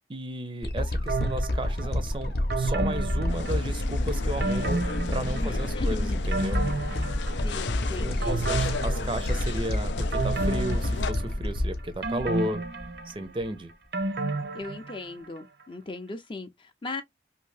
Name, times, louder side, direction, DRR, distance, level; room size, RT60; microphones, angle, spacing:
voice 1, 0.1-4.8 5.1-6.6 8.0-12.6 13.0-13.7, right 1 dB, 30° right, 0.5 m, -34 dB
sound 1, 0.6-13.0 13.4-13.5, left 1 dB, 60° left, 0.7 m, -29 dB
sound 2, 1.1-1.9 2.5-3.9 4.4-5.7 6.1-7.8 8.2-9.6 10.1-11.6 12.0-15.3 15.6-15.7, right 3 dB, 70° right, 0.7 m, -32 dB
sound 3, 3.3-11.1, left 6 dB, 90° left, 0.4 m, -37 dB
voice 2, 5.4-6.2 7.4-8.4 14.5-17.0, left 3 dB, 30° left, 0.4 m, -38 dB
2.7 x 2.6 x 3.2 m
head